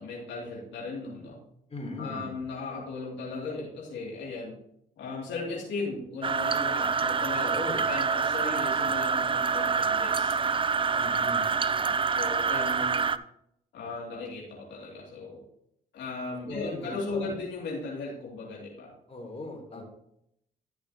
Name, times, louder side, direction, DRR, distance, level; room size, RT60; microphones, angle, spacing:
voice 1, 0.0-1.4 2.0-4.6 5.0-7.5 7.9-10.3 11.8-13.1 13.7-15.4 15.9-18.9 19.7-19.8, left 3 dB, 75° left, -4 dB, 2.8 m, -37 dB
voice 2, 1.7-2.2 7.4-7.8 10.9-11.4 16.5-17.4 19.1-19.8, left 2 dB, 35° left, 0 dB, 3.4 m, -38 dB
sound 1, 6.2-13.2, right 5 dB, 30° right, 0.5 m, -26 dB
13.5 x 6.0 x 3.0 m, 0.74 s
supercardioid pair, 65°, 18 cm